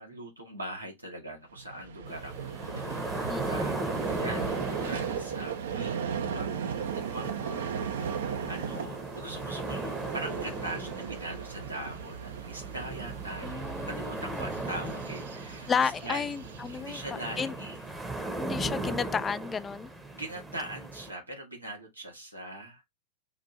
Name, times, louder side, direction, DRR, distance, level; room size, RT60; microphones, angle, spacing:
voice 1, 0.0-3.8 4.2-7.7 8.2-16.3 16.7-17.8 20.1-22.8, right 1 dB, 85° right, 1.5 m, -41 dB
Vehicle, 1.6-17.9, right 7 dB, 60° right, 0.6 m, -37 dB
sound 1, 2.1-21.1, right 2 dB, 10° right, 0.8 m, -38 dB
voice 2, 3.3-3.7 13.4-14.5 15.7-17.0 17.4-17.5 18.4-19.9, left 6 dB, 20° left, 0.3 m, -32 dB
4.0 x 2.5 x 4.3 m
figure-of-eight pair, 90°, 0 cm